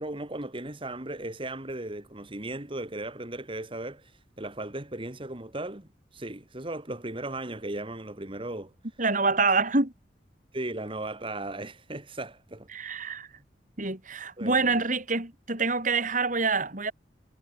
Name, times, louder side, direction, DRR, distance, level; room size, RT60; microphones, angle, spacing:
voice 1, 0.0-8.7 10.5-13.1 14.4-14.8, right 2 dB, 30° right, 2.3 m, -37 dB
voice 2, 9.0-9.9 12.7-13.3 13.8-16.9, right 4 dB, 45° right, 4.2 m, -26 dB
head